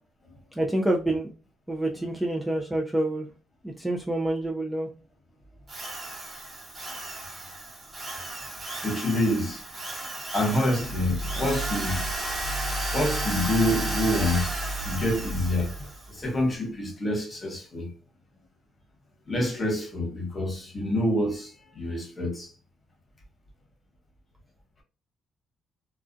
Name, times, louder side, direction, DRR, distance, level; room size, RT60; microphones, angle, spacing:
voice 1, 0.6-1.3 1.7-3.3 3.6-4.9, right 1 dB, 5° right, 0.4 m, -27 dB
Drill, 5.7-16.1, right 1 dB, 40° right, 1.1 m, -34 dB
voice 2, 8.8-9.6 10.3-12.0 12.9-14.5 14.8-17.9 19.3-22.5, left 1 dB, 30° left, 1.1 m, -27 dB
sound 1, 10.6-16.0, right 1 dB, 65° left, 0.3 m, -34 dB
2.3 x 2.2 x 2.5 m
cardioid pair, 90°, 0 cm